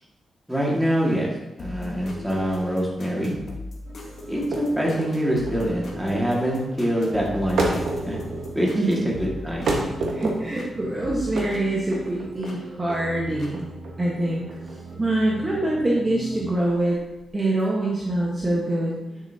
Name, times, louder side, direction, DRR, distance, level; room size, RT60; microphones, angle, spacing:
voice 1, 0.5-3.3 4.3-7.8 8.1-8.2 8.5-9.8, equal, 5° right, -3 dB, 2.0 m, -25 dB
sound 1, 1.6-10.7 11.0-12.6 13.4-13.5, left 2 dB, 60° left, 1.6 m, -39 dB
sound 2, 3.9-16.4, right 2 dB, 55° right, 2.3 m, -40 dB
sound 3, 4.4-17.3, right 2 dB, 90° right, 1.4 m, -31 dB
voice 2, 8.8-9.1 10.1-13.7 14.0-14.4 15.0-17.0 17.3-19.2, right 1 dB, 25° right, -4 dB, 1.3 m, -24 dB
9.8 x 7.9 x 2.8 m, 0.96 s
wide cardioid pair, 150°, 0 cm